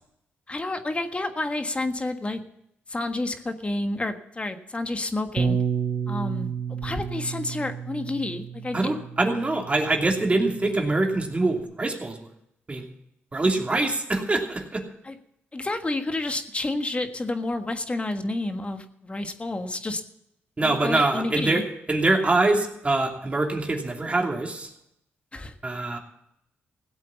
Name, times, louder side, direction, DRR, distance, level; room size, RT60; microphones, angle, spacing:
voice 1, 0.5-2.4 2.9-5.6 6.1-8.9 15.0-15.2 15.5-20.0 20.6-21.6 25.3-25.5, left 2 dB, 25° left, 7 dB, 1.5 m, -30 dB
Bass guitar, 5.4-11.6, right 6 dB, 45° right, 1.0 m, -31 dB
voice 2, 8.7-12.2 12.7-12.8 13.3-14.8 20.6-21.6 21.9-24.7 25.6-26.0, right 2 dB, 25° right, 1 dB, 2.8 m, -24 dB
16.5 x 8.0 x 7.1 m, 0.77 s
cardioid pair, 70°, 5 cm